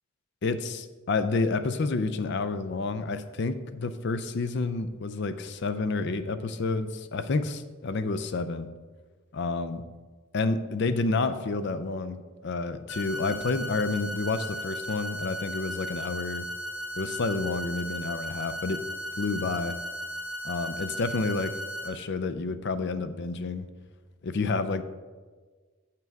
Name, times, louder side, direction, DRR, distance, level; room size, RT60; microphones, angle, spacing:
voice 1, 0.4-8.7 9.3-9.8 10.3-16.5 17.0-18.8 19.2-19.8 20.4-21.6 21.8-23.7 24.2-24.8, left 3 dB, 55° left, 12 dB, 0.5 m, -29 dB
sound 1, 12.9-21.9, equal, 75° left, 1.2 m, -36 dB
9.1 x 5.8 x 4.6 m, 1.4 s
head